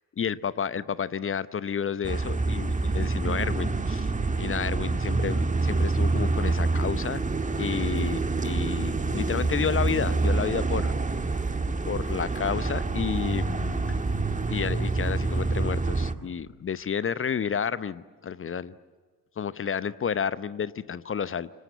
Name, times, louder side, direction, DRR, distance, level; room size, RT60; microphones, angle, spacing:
voice 1, 0.2-4.1 4.4-7.2 7.6-10.9 11.8-14.0 14.5-18.7 19.4-21.5, left 7 dB, 25° left, 17 dB, 0.9 m, -31 dB
sound 1, 2.0-16.1, right 3 dB, 15° right, 1.8 m, -27 dB
28.5 x 25.0 x 8.1 m, 1.5 s
figure-of-eight pair, 45°, 48 cm